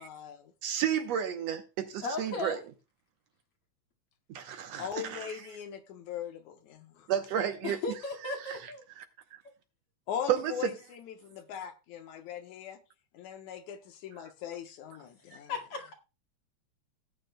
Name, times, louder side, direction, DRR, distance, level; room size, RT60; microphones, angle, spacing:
voice 1, 0.0-0.5 4.8-7.1 10.1-12.8 13.1-15.5, left 8 dB, 80° left, 2.4 m, -40 dB
voice 2, 0.6-2.6 4.3-5.3 7.1-7.8 8.5-8.6 9.0-9.1 10.3-10.7, right 9 dB, 70° right, 1.9 m, -31 dB
voice 3, 2.0-2.6 7.6-8.8 15.3-15.9, left 3 dB, 50° left, 2.9 m, -36 dB
17.5 x 9.0 x 2.2 m
omnidirectional pair, 3.4 m